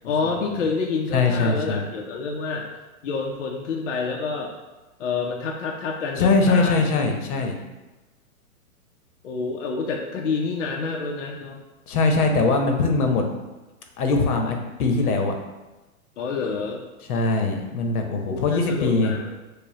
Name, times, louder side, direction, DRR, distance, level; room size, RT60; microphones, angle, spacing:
voice 1, 0.0-2.7 3.0-4.5 5.0-6.8 9.2-11.6 16.2-16.8 18.3-19.3, left 4 dB, 55° left, 0 dB, 0.5 m, -28 dB
voice 2, 1.1-1.8 6.2-7.5 11.9-13.2 14.0-15.3 17.1-19.1, left 3 dB, 80° left, 3 dB, 0.8 m, -21 dB
5.0 x 2.2 x 2.7 m, 1.1 s
hypercardioid pair, 175°, 44 cm